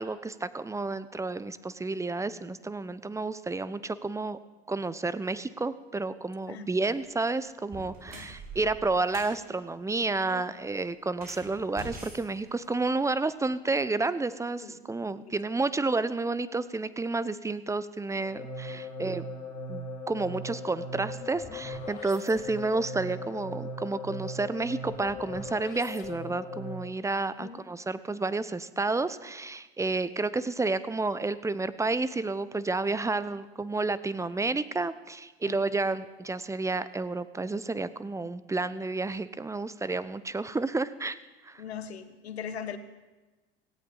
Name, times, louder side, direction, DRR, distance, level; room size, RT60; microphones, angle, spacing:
voice 1, 0.0-4.4 4.7-19.3 19.7-41.2 41.5-41.6, right 3 dB, 10° right, 0.8 m, -30 dB
sound 1, 6.8-7.1 7.6-9.4 11.1-13.1, right 2 dB, 30° right, 5.7 m, -45 dB
sound 2, 18.2-27.0, left 1 dB, 30° left, 4.6 m, -39 dB
voice 2, 41.6-42.8, left 8 dB, 80° left, 1.2 m, -39 dB
17.5 x 17.0 x 3.9 m
hypercardioid pair, 75°, 32 cm